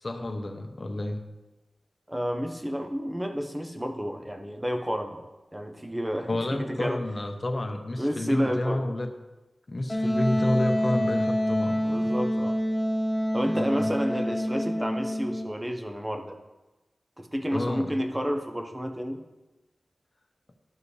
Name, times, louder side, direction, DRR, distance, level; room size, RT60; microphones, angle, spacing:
voice 1, 0.0-1.2 6.3-9.1 9.7-12.2 13.5-13.9 17.5-18.0, left 1 dB, 40° left, 5 dB, 0.8 m, -30 dB
voice 2, 2.1-5.2 5.5-7.0 8.0-8.9 11.8-12.5 13.3-16.4 17.2-19.2, equal, 15° right, 4 dB, 0.8 m, -30 dB
Wind instrument woodwind instrument, 9.9-15.5, equal, 20° left, 1.8 m, -26 dB
12.0 x 4.8 x 3.2 m, 1.1 s
wide cardioid pair, 95°, 0 cm